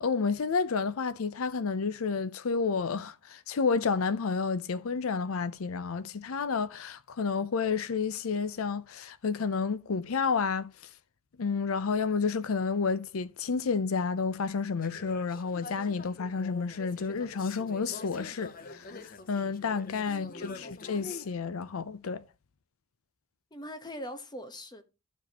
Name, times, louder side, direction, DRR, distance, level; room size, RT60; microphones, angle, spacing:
voice 1, 0.0-10.7 11.4-22.2, left 5 dB, 80° left, 0.6 m, -30 dB
sound 1, 14.8-21.3, left 3 dB, 45° left, 0.7 m, -46 dB
voice 2, 20.1-20.8 23.5-24.8, equal, 20° left, 1.2 m, -42 dB
13.5 x 5.0 x 2.9 m
head